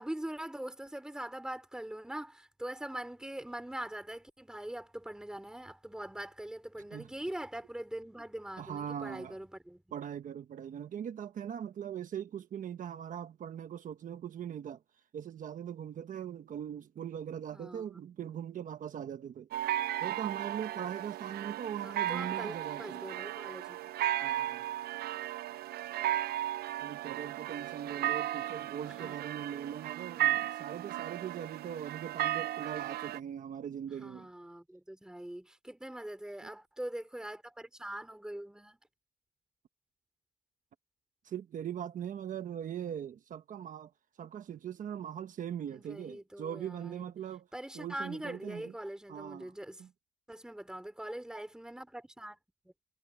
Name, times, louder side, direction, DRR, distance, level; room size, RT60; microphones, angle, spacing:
voice 1, 0.0-9.8 17.5-17.8 21.8-23.8 28.9-29.2 34.0-38.8 45.7-47.1 47.5-49.8 50.3-52.4 52.6-52.7, right 1 dB, 5° right, 3.1 m, -42 dB
voice 2, 8.6-9.4 9.9-14.8 15.1-19.5 20.0-23.0 24.2-24.7 26.8-34.3 36.4-36.5 41.2-43.9 44.2-47.5 47.7-48.7 49.1-49.9, right 9 dB, 55° right, 1.1 m, -41 dB
sound 1, 19.5-33.2, right 13 dB, 80° right, 0.5 m, -35 dB
cardioid pair, 140°, 16 cm